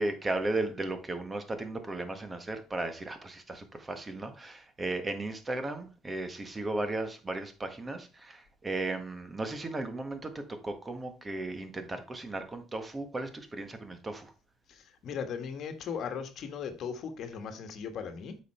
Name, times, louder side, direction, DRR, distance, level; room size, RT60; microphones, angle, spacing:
voice 1, 0.0-14.3, right 2 dB, 20° right, 1.5 m, -35 dB
voice 2, 14.7-18.4, left 6 dB, 55° left, 1.4 m, -38 dB
8.2 x 5.5 x 4.4 m
cardioid pair, 105°, 0 cm